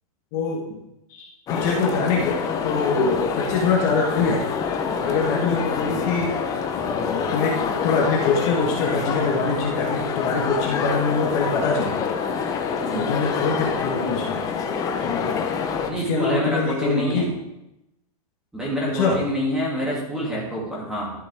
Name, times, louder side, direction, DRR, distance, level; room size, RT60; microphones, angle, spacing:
voice 1, 0.3-0.8 1.1-4.6 5.0-6.3 6.8-11.9 13.1-14.4 15.0-15.4 16.1-17.3 18.9-19.2, left 4 dB, 35° left, -1 dB, 1.5 m, -24 dB
sound 1, 1.5-15.9, left 6 dB, 20° left, 0.7 m, -26 dB
voice 2, 12.8-13.1 15.9-17.3 18.5-21.1, equal, 5° right, -5 dB, 2.5 m, -26 dB
12.5 x 7.5 x 3.6 m, 0.90 s
hypercardioid pair, 155°, 19 cm